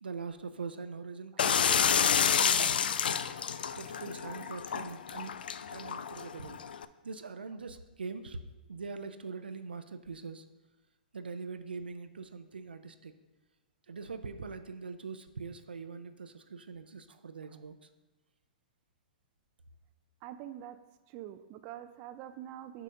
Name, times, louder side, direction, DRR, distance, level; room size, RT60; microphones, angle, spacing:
voice 1, 0.0-2.9 3.8-5.4 5.7-6.6 7.0-8.4 8.7-10.4 11.1-13.1 13.9-17.8, right 4 dB, 85° right, 10 dB, 0.5 m, -42 dB
sound 1, 1.4-6.8, left 7 dB, 75° left, 0.3 m, -29 dB
voice 2, 17.1-17.6 20.2-20.8 21.1-22.8, right 12 dB, 35° right, 10 dB, 0.4 m, -46 dB
6.3 x 3.9 x 5.6 m, 1.2 s
hypercardioid pair, 120°, 5 cm